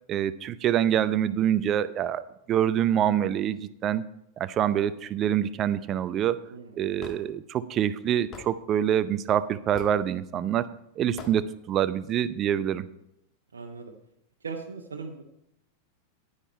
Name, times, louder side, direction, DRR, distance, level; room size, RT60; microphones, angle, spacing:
voice 1, 0.1-4.0 4.4-6.4 6.8-10.7 11.0-12.9, right 10 dB, 30° right, 15 dB, 0.6 m, -26 dB
voice 2, 6.5-6.9 13.5-13.9 14.4-15.2, right 5 dB, 70° right, 1 dB, 1.0 m, -39 dB
Hammer / Wood, 7.0-7.2 8.3-8.5 9.7-10.0 11.2-11.4, left 5 dB, 30° left, 1.5 m, -41 dB
9.9 x 9.8 x 4.4 m, 0.79 s
figure-of-eight pair, 90°, 0 cm